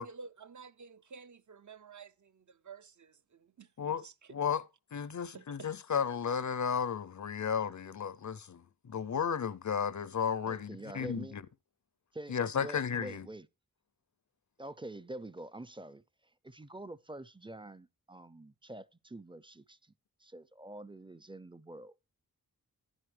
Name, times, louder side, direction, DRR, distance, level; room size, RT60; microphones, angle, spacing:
voice 1, 0.0-3.7 4.0-4.3 5.3-5.7, right 5 dB, 50° right, 0.6 m, -51 dB
voice 2, 4.3-4.6 4.9-8.6 8.9-11.3 12.3-13.3, left 7 dB, 50° left, 0.6 m, -33 dB
voice 3, 10.5-11.4 12.1-13.5 14.6-19.9 20.2-21.9, right 1 dB, 15° right, 0.5 m, -46 dB
11.0 x 9.8 x 3.3 m
wide cardioid pair, 50°, 37 cm